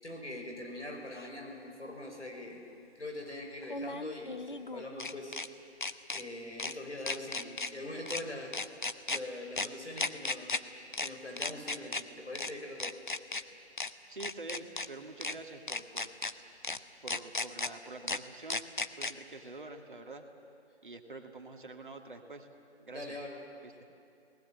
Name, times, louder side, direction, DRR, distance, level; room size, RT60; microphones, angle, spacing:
voice 1, 0.0-2.6 2.9-5.4 6.1-8.5 9.1-10.6 11.0-13.0 22.9-23.4, left 1 dB, 90° left, 1 dB, 6.0 m, -42 dB
sound 1, 1.2-1.3 3.6-5.5 5.8-6.2 6.6-6.7 7.1-7.7 8.1-8.2 8.5-9.2 9.6-9.7 10.0-10.6 10.9-11.1 11.4-12.0 12.3-12.5 12.8-13.4 13.8-13.9 14.2-14.9 15.2-15.3 15.7-16.3 16.6-16.8 17.1-17.7 18.1-18.2 18.5-19.1, left 3 dB, 45° left, 0.8 m, -35 dB
voice 2, 14.1-16.1 17.0-18.7 19.0-20.3 20.8-22.5 22.8-23.2 23.6-23.7, right 3 dB, 45° right, 4 dB, 2.0 m, -46 dB
28.5 x 19.5 x 7.4 m, 2.4 s
figure-of-eight pair, 170°, 34 cm